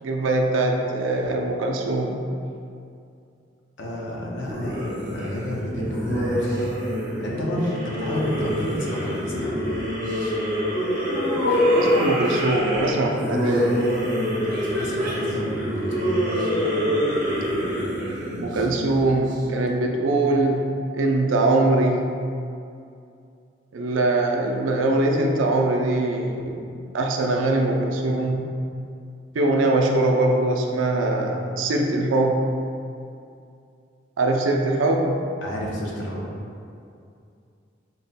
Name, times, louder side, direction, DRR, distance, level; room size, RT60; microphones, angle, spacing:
voice 1, 0.0-2.2 11.7-13.9 18.3-20.7 20.9-22.0 23.7-26.7 26.9-28.4 29.3-32.5 34.2-35.1, right 2 dB, 80° right, 1 dB, 0.4 m, -22 dB
voice 2, 3.8-6.7 7.2-9.7 14.6-16.1 35.4-36.2, equal, 70° left, -3 dB, 0.7 m, -30 dB
sound 1, 4.4-19.3, equal, 45° right, 0.8 m, -25 dB
3.9 x 2.1 x 4.0 m, 2.5 s
head